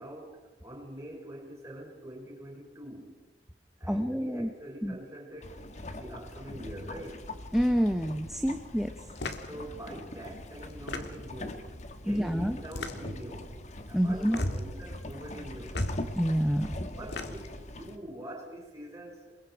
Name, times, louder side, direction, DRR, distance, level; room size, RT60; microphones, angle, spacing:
voice 1, 0.0-3.1 3.8-7.2 9.2-13.5 13.9-15.8 17.0-19.4, right 1 dB, 20° right, -1 dB, 5.9 m, -44 dB
voice 2, 3.9-4.5 4.8-4.9 7.5-8.9 12.1-12.6 13.9-14.4 16.1-16.7, equal, ahead, 5 dB, 1.0 m, -27 dB
sound 1, 5.4-18.0, left 1 dB, 40° left, 1.5 m, -40 dB
sound 2, 9.2-9.5 10.7-11.4 12.6-13.2 14.2-14.7 15.7-16.0 16.9-17.6, left 3 dB, 75° left, 1.9 m, -38 dB
28.5 x 22.0 x 4.8 m, 1.2 s
head